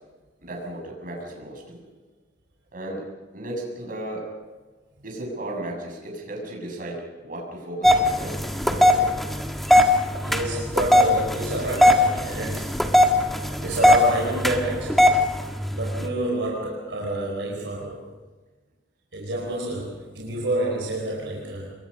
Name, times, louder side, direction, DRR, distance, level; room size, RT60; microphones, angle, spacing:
voice 1, 0.4-1.9 2.7-3.0 3.3-4.3 5.0-9.1 13.6-13.7, right 1 dB, 50° right, 0 dB, 7.2 m, -35 dB
sound 1, 7.8-16.1, left 1 dB, ahead, 1.6 m, -20 dB
voice 2, 10.2-12.7 13.6-15.1 15.7-18.1 19.1-21.7, right 2 dB, 70° right, -2 dB, 4.6 m, -28 dB
27.0 x 22.5 x 5.5 m, 1.3 s
head